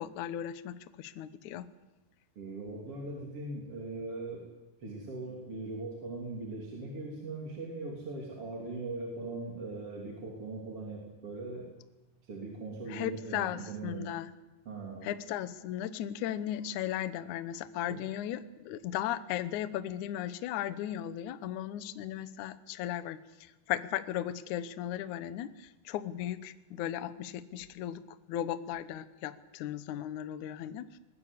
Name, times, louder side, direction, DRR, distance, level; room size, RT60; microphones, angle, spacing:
voice 1, 0.0-1.7 12.9-14.3 15.0-31.0, left 11 dB, 75° left, 12 dB, 1.7 m, -36 dB
voice 2, 2.4-4.5 4.8-11.7 12.2-14.1 14.7-15.1 17.9-18.0, right 3 dB, 35° right, -2 dB, 3.7 m, -40 dB
21.0 x 21.0 x 8.4 m, 1.1 s
omnidirectional pair, 4.9 m